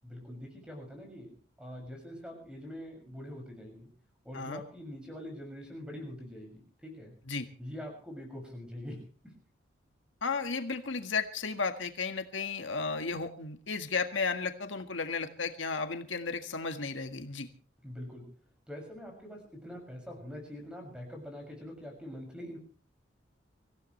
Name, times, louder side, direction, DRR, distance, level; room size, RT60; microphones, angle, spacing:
voice 1, 0.0-3.9 4.2-7.1 7.6-9.1 17.8-18.3 18.7-22.6, equal, 5° right, 2 dB, 6.6 m, -44 dB
voice 2, 10.2-17.5, left 4 dB, 90° left, 6 dB, 1.8 m, -34 dB
25.5 x 16.0 x 3.3 m, 0.38 s
head